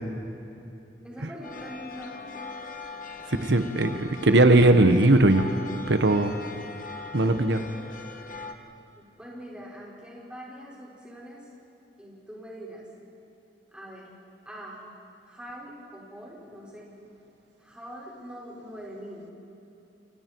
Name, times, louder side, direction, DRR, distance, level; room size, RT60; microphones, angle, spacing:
voice 1, 1.0-2.5 8.9-11.5 12.0-12.9 13.7-14.1 14.5-14.9 15.2-16.9 17.6-19.3, equal, 5° right, -5 dB, 5.5 m, -43 dB
sound 1, 1.4-8.5, left 4 dB, 50° left, 1.5 m, -41 dB
voice 2, 3.4-5.5 5.9-6.4 7.1-7.7, right 2 dB, 85° right, 8 dB, 1.1 m, -19 dB
29.0 x 28.5 x 4.6 m, 3.0 s
head